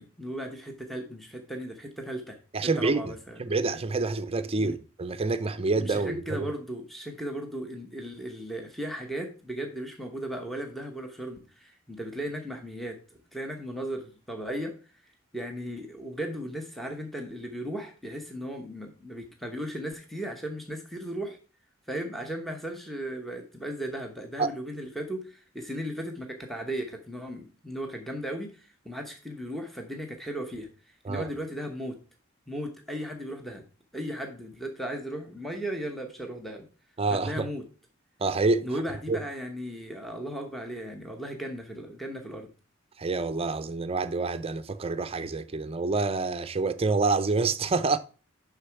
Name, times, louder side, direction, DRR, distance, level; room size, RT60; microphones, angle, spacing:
voice 1, 0.0-3.4 4.6-4.8 5.8-13.0 13.3-14.7 15.3-21.4 21.9-32.0 32.5-33.6 33.9-36.7 37.1-37.6 38.6-42.5, equal, ahead, 0.9 m, -36 dB
voice 2, 2.5-3.1 3.4-6.5 24.4-24.5 31.0-31.3 37.0-37.5 38.2-38.7 39.1-39.2 43.0-48.0, right 3 dB, 30° right, 0.5 m, -27 dB
6.7 x 5.9 x 4.6 m
head